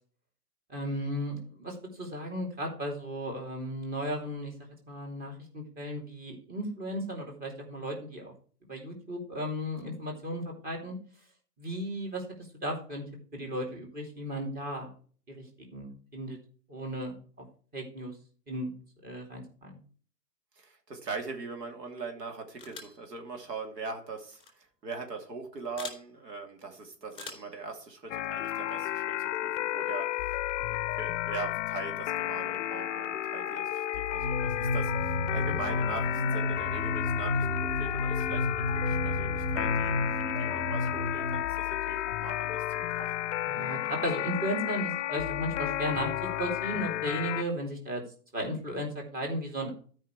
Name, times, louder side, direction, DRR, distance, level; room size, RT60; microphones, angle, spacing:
voice 1, 0.7-4.5 4.9-8.3 8.7-11.0 11.6-13.0 13.3-14.9 15.4-16.4 16.7-17.4 17.7-18.2 18.5-18.7 19.0-19.8 35.4-35.5 43.5-48.0 48.3-49.7, equal, 20° right, 1 dB, 3.0 m, -35 dB
voice 2, 20.6-40.0 40.4-43.1, right 4 dB, 85° right, 3 dB, 2.8 m, -41 dB
sound 1, 22.6-23.0 24.3-24.5 25.8-26.0 27.1-27.6, left 4 dB, 10° left, 3.3 m, -43 dB
sound 2, 28.1-47.4, left 14 dB, 50° left, 0.5 m, -32 dB
sound 3, 34.2-41.4, left 1 dB, 45° right, 4.7 m, -31 dB
12.5 x 5.6 x 4.7 m, 0.43 s
hypercardioid pair, 135°, 48 cm